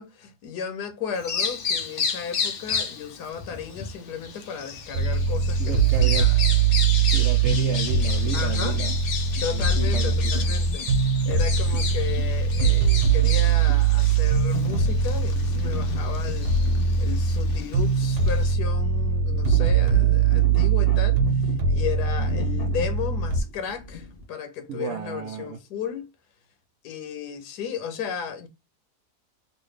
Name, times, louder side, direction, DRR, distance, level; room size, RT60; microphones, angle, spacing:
voice 1, 0.0-6.4 8.3-8.8 9.4-10.9 11.3-16.5 17.0-26.1 26.8-28.5, left 7 dB, 80° left, 1.3 m, -34 dB
Bird vocalization bird call bird song, 1.1-18.5, left 5 dB, 60° left, 0.6 m, -33 dB
sound 1, 4.9-23.4, right 5 dB, 85° right, 1.4 m, -22 dB
voice 2, 5.6-6.3 7.1-8.9 9.5-10.3 22.2-22.3 24.7-25.6, right 8 dB, 65° right, 0.7 m, -33 dB
sound 2, 8.7-24.2, left 5 dB, 45° left, 1.0 m, -40 dB
3.2 x 2.6 x 3.1 m
omnidirectional pair, 1.7 m